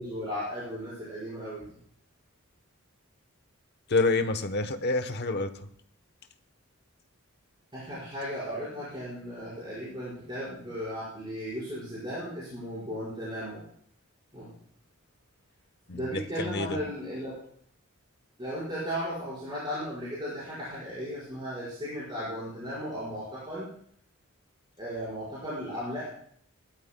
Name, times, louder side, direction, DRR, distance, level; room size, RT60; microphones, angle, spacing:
voice 1, 0.0-1.8 7.7-13.6 14.3-14.5 15.9-17.4 18.4-23.7 24.8-26.1, equal, 20° right, -11 dB, 5.0 m, -36 dB
voice 2, 3.9-5.5 15.9-16.8, left 3 dB, 50° left, 9 dB, 1.0 m, -28 dB
20.0 x 12.5 x 2.2 m, 0.63 s
head